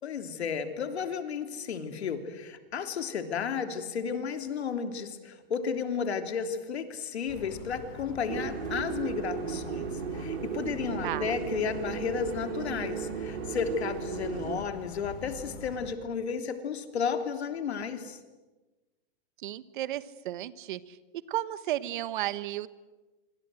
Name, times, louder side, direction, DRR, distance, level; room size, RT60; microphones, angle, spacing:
voice 1, 0.0-18.2, left 6 dB, 90° left, 7 dB, 3.3 m, -33 dB
sound 1, 7.3-15.9, left 5 dB, 35° left, 4.2 m, -44 dB
sound 2, 8.3-14.6, right 8 dB, 85° right, 2.3 m, -35 dB
voice 2, 11.0-11.3 19.4-21.0 21.3-22.7, right 13 dB, 50° right, 15 dB, 1.3 m, -33 dB
26.0 x 25.5 x 7.8 m, 1.2 s
hypercardioid pair, 160°, 31 cm